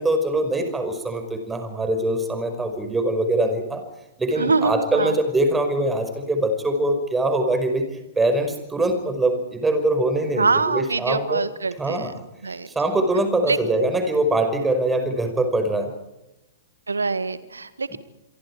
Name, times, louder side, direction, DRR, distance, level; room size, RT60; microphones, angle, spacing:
voice 1, 0.0-3.8 4.2-7.9 8.2-11.4 11.8-12.1 12.7-15.9, right 1 dB, 10° right, 7 dB, 5.4 m, -23 dB
voice 2, 4.4-5.2 10.3-12.1 12.4-12.7 13.5-13.6 16.9-18.0, right 4 dB, 80° right, 14 dB, 1.7 m, -24 dB
27.5 x 23.5 x 4.9 m, 0.94 s
figure-of-eight pair, 110°, 0 cm